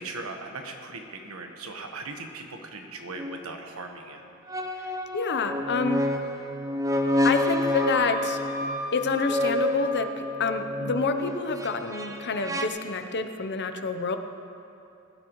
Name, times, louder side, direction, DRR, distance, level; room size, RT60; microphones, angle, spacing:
voice 1, 0.0-4.2, right 3 dB, 80° right, 4 dB, 1.2 m, -39 dB
sound 1, 3.2-3.4 4.5-12.7, left 1 dB, 15° right, 0.6 m, -29 dB
voice 2, 5.1-6.0 7.2-8.4 8.9-10.1 10.4-14.2, left 4 dB, 55° left, 8 dB, 0.7 m, -28 dB
Wind instrument woodwind instrument, 6.9-10.5, left 1 dB, 35° right, 2.2 m, -37 dB
19.5 x 12.0 x 3.1 m, 2.8 s
head